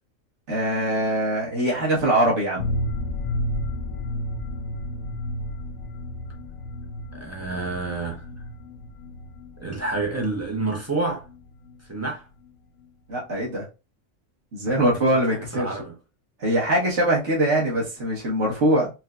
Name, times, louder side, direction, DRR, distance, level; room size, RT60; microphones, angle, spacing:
voice 1, 0.5-2.8 13.1-13.6 14.5-15.8 16.4-18.9, right 1 dB, 60° right, 1.6 m, -22 dB
sound 1, 2.6-12.2 12.5-12.6 12.8-12.9, left 1 dB, 65° left, 0.9 m, -32 dB
voice 2, 7.1-8.3 9.6-11.3 11.9-12.3 15.1-16.0, right 3 dB, 20° right, 0.5 m, -29 dB
4.3 x 2.2 x 2.4 m
omnidirectional pair, 1.4 m